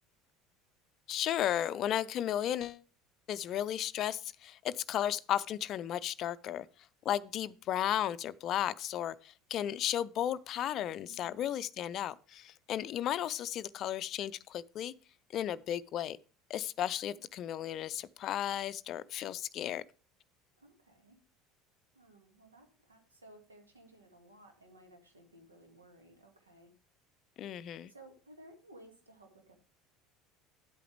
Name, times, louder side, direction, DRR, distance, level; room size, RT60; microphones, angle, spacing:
voice 1, 1.1-2.8 3.3-6.7 7.0-14.9 15.3-16.2 16.5-19.8 27.4-27.9, left 11 dB, 45° left, 0.4 m, -34 dB
voice 2, 10.7-11.6 17.0-17.3 20.6-21.2 21.9-26.7 27.9-29.6, right 1 dB, 85° right, 1.9 m, -58 dB
10.0 x 8.4 x 3.3 m
figure-of-eight pair, 70°, 0 cm